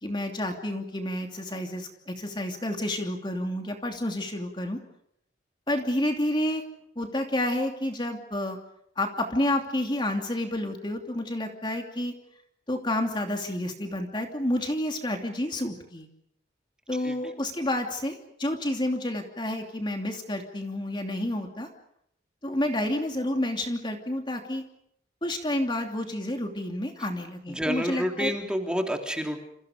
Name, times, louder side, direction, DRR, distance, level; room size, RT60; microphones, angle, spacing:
voice 1, 0.0-4.8 5.7-6.6 7.0-8.6 9.0-12.1 12.7-16.1 16.9-21.7 22.4-24.6 25.2-28.3, left 1 dB, 25° left, 3 dB, 2.8 m, -29 dB
voice 2, 27.5-29.4, equal, 5° right, 3 dB, 3.4 m, -29 dB
29.0 x 28.5 x 5.2 m, 0.73 s
head